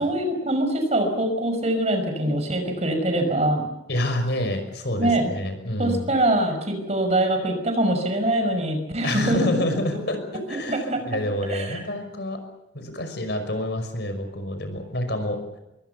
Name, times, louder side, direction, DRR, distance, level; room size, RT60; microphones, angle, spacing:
voice 1, 0.0-3.7 5.0-5.3 5.8-9.7 10.5-11.2 11.5-11.8, right 1 dB, 35° right, 6 dB, 5.7 m, -23 dB
voice 2, 3.9-6.1 9.0-12.4 12.7-15.4, left 1 dB, 60° left, 7 dB, 5.9 m, -28 dB
26.0 x 23.5 x 7.0 m, 0.91 s
head